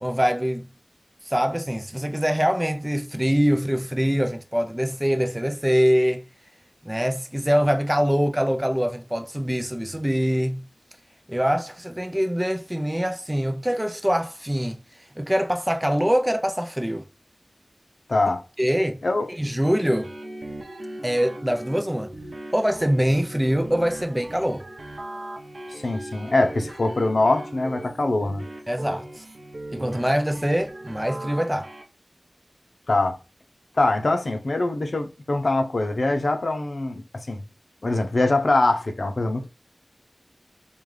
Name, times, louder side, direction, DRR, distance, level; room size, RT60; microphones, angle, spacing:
voice 1, 0.0-0.7 1.3-6.2 6.8-10.7 11.3-14.8 15.2-17.0 18.6-19.0 19.3-20.1 21.0-22.1 22.5-24.6 28.7-29.2 29.7-31.7, equal, 15° right, 0.5 m, -24 dB
voice 2, 18.1-18.4 19.0-19.3 25.8-28.4 32.9-33.2 33.7-37.4 37.8-39.5, left 2 dB, 85° left, 0.6 m, -23 dB
sound 1, 19.7-31.8, right 1 dB, 75° right, 0.7 m, -38 dB
5.1 x 2.3 x 3.2 m
wide cardioid pair, 55°, 0 cm